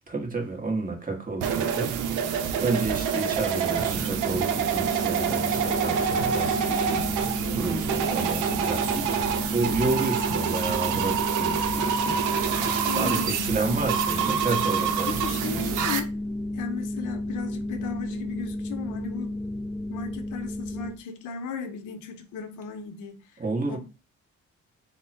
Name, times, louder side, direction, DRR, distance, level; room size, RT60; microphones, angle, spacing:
voice 1, 0.1-7.0 7.5-9.2 9.5-12.1 12.8-15.5 23.4-23.8, right 3 dB, 30° right, 1.3 m, -31 dB
sound 1, 1.4-16.0, right 7 dB, 90° right, 0.6 m, -27 dB
sound 2, 3.2-20.9, left 1 dB, ahead, 0.4 m, -33 dB
voice 2, 12.8-13.6 15.1-16.1 16.5-19.3 19.9-23.4 23.7-23.8, left 6 dB, 85° left, 0.7 m, -36 dB
3.5 x 2.1 x 4.2 m
cardioid pair, 90°, 30 cm